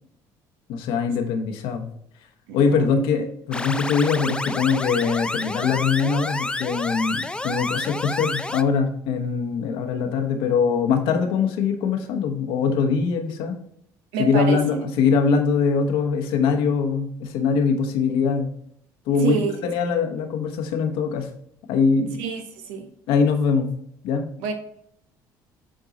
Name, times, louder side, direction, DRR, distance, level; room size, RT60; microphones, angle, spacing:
voice 1, 0.7-1.9 2.5-13.6 14.2-18.5 19.1-21.3 21.7-22.1 23.1-23.7 24.0-24.3, left 5 dB, 75° left, 5 dB, 1.2 m, -22 dB
voice 2, 2.5-2.9 14.1-14.6 19.2-19.6 22.2-22.9 24.4-24.5, right 6 dB, 85° right, 5 dB, 1.1 m, -28 dB
sound 1, 3.5-8.6, left 2 dB, 10° left, 0.4 m, -29 dB
7.7 x 3.8 x 4.1 m, 0.67 s
supercardioid pair, 80°, 9 cm